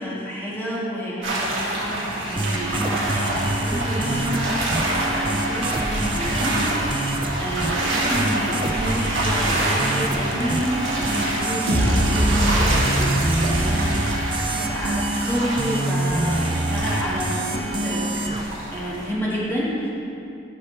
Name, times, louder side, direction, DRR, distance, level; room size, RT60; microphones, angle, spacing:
voice 1, 0.0-18.1 18.7-19.9, equal, 10° left, -8 dB, 1.8 m, -29 dB
sound 1, 1.2-19.1, right 1 dB, 65° right, 1.9 m, -27 dB
sound 2, 2.4-18.4, right 1 dB, 25° right, 0.5 m, -26 dB
sound 3, 11.7-15.8, equal, 85° right, 1.5 m, -24 dB
13.5 x 5.7 x 3.3 m, 2.6 s
head